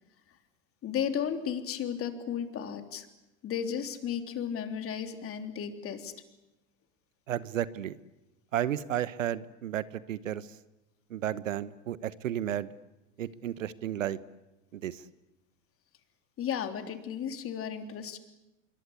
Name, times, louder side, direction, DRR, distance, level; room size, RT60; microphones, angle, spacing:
voice 1, 0.8-3.1 3.4-6.1 16.4-18.2, left 8 dB, 35° left, 7 dB, 3.4 m, -34 dB
voice 2, 7.3-7.9 8.5-10.5 11.1-12.7 13.2-14.2 14.7-15.0, right 11 dB, 80° right, 18 dB, 1.1 m, -33 dB
26.5 x 23.5 x 8.4 m, 0.99 s
hypercardioid pair, 95°, 39 cm